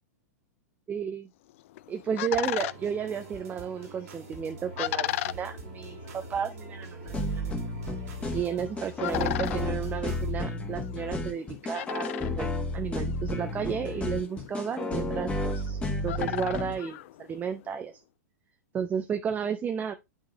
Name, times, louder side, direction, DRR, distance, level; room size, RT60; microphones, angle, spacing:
voice 1, 0.9-1.3 1.9-7.7 8.1-12.1 12.4-18.0 18.7-19.9, right 7 dB, 20° right, 0.6 m, -33 dB
sound 1, 1.5-17.8, left 15 dB, 50° left, 0.3 m, -38 dB
sound 2, 2.3-10.3, right 3 dB, 60° right, 2.2 m, -45 dB
sound 3, 7.1-16.8, left 2 dB, 15° left, 1.4 m, -32 dB
10.5 x 3.7 x 3.0 m
figure-of-eight pair, 105°, 9 cm